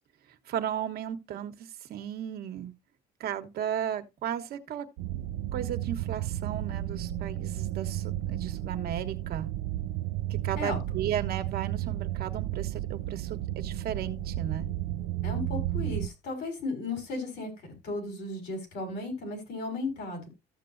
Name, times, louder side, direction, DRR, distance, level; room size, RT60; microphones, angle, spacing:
voice 1, 0.5-2.7 3.2-4.9 5.5-9.5 10.3-14.7, right 10 dB, 65° right, 1.2 m, -35 dB
sound 1, 5.0-16.1, right 13 dB, 90° right, 0.4 m, -33 dB
voice 2, 15.2-20.3, left 2 dB, 75° left, 4.6 m, -35 dB
14.0 x 6.8 x 2.6 m
cardioid pair, 110°, 17 cm